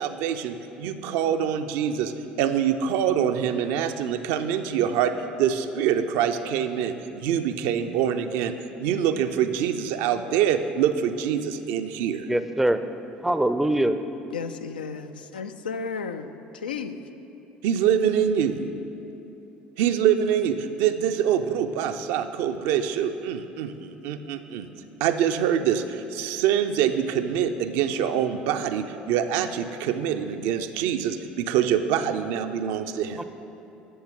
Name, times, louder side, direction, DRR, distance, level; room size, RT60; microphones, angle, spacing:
voice 1, 0.0-5.1 5.4-8.5 8.8-12.3 17.6-18.6 19.8-24.7 25.0-33.2, right 9 dB, 65° right, 8 dB, 0.4 m, -25 dB
voice 2, 12.2-12.8 13.2-14.0 33.2-33.3, right 1 dB, 5° right, 10 dB, 0.4 m, -23 dB
voice 3, 14.3-17.1, left 5 dB, 85° left, 8 dB, 0.3 m, -34 dB
11.0 x 7.1 x 3.7 m, 2.9 s
figure-of-eight pair, 60°, 5 cm